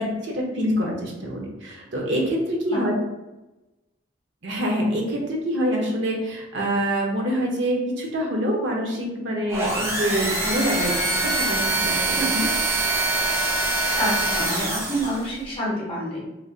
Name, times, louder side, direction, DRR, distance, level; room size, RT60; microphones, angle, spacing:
voice 1, 0.0-2.9 4.4-12.3, equal, 70° right, -1 dB, 0.7 m, -26 dB
sound 1, 9.5-15.3, right 2 dB, 15° right, 0.4 m, -24 dB
voice 2, 12.1-12.5 14.0-16.2, equal, 30° left, -5 dB, 1.0 m, -27 dB
3.2 x 2.6 x 2.4 m, 1.0 s
head